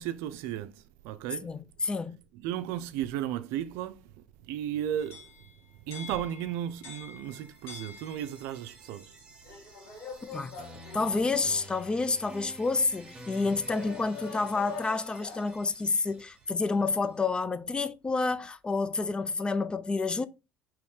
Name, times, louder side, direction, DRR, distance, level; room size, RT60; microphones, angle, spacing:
voice 1, 0.0-1.5 2.4-4.1 4.4-5.3 5.9-9.2, right 11 dB, 85° right, 0.5 m, -34 dB
voice 2, 1.4-2.2 10.2-10.6 10.9-20.3, left 3 dB, 20° left, 0.4 m, -29 dB
sound 1, 5.0-8.6 9.4-11.7 12.5-12.6 13.6-15.6, left 5 dB, 70° left, 1.7 m, -45 dB
sound 2, 7.2-17.1, right 1 dB, 20° right, 1.4 m, -51 dB
4.8 x 3.0 x 3.6 m
supercardioid pair, 90°, 4 cm